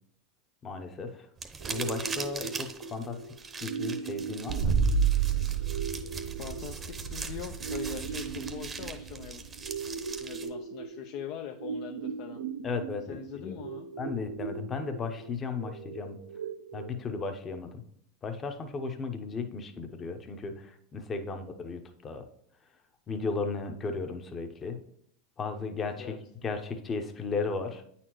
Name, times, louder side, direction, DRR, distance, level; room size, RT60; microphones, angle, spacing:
voice 1, 0.6-1.3 1.6-3.2 3.4-4.7 12.6-13.6 14.0-16.2 16.7-17.8 18.2-22.2 23.1-24.8 25.4-26.1 26.4-27.8, left 4 dB, 25° left, 7 dB, 0.8 m, -35 dB
sound 1, 1.4-10.5, right 5 dB, 25° right, 0.7 m, -41 dB
sound 2, 1.6-17.6, right 6 dB, 85° right, 0.5 m, -40 dB
sound 3, 4.5-10.1, right 6 dB, 55° right, 0.8 m, -30 dB
voice 2, 6.4-9.4 10.1-12.4 13.1-13.9 26.0-26.2, left 9 dB, 55° left, 5 dB, 0.4 m, -42 dB
8.7 x 4.2 x 3.1 m, 0.66 s
hypercardioid pair, 110°, 0 cm